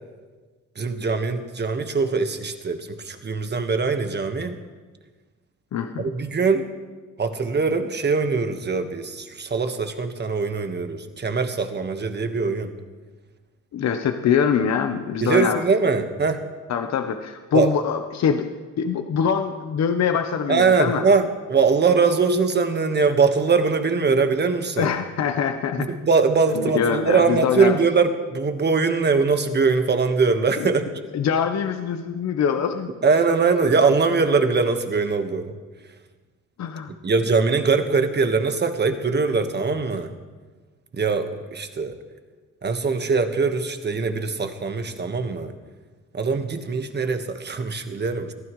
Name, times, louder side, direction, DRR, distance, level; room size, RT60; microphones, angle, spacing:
voice 1, 0.8-4.6 6.0-6.6 7.2-12.7 15.2-16.4 17.5-17.7 20.5-24.9 25.8-30.8 33.0-35.5 37.0-40.1 40.9-42.0 42.6-45.5 46.1-48.3, right 4 dB, 35° right, 7 dB, 1.5 m, -22 dB
voice 2, 5.7-6.1 13.7-15.6 16.7-18.5 18.8-21.0 24.8-25.9 26.5-27.8 30.6-30.7 31.1-32.9 36.6-36.9, left 7 dB, 60° left, 6 dB, 1.0 m, -23 dB
22.5 x 15.0 x 3.2 m, 1.4 s
cardioid pair, 90°, 30 cm